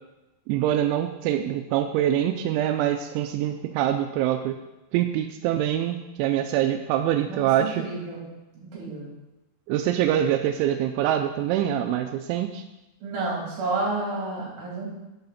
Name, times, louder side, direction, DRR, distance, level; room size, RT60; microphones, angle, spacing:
voice 1, 0.5-4.6 4.9-7.8 9.7-12.6, right 11 dB, 90° right, 6 dB, 3.0 m, -24 dB
voice 2, 7.3-8.2 8.5-9.1 13.0-14.9, right 3 dB, 55° right, -4 dB, 4.5 m, -30 dB
11.0 x 7.4 x 4.2 m, 1.0 s
omnidirectional pair, 5.3 m